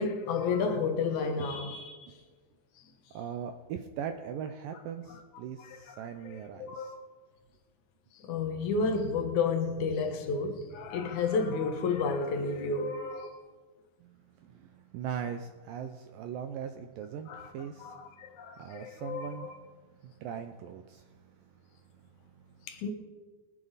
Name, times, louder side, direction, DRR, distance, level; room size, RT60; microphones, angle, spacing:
voice 1, 0.0-2.0 5.6-6.1 6.3-7.0 8.2-13.4 17.3-17.5 17.8-19.5 22.7-22.9, left 4 dB, 60° left, 2.3 m, -31 dB
voice 2, 3.1-6.9 14.0-18.0 18.6-19.7 20.0-21.5 21.9-22.7, right 8 dB, 80° right, 2.1 m, -40 dB
23.0 x 9.3 x 4.1 m
omnidirectional pair, 4.6 m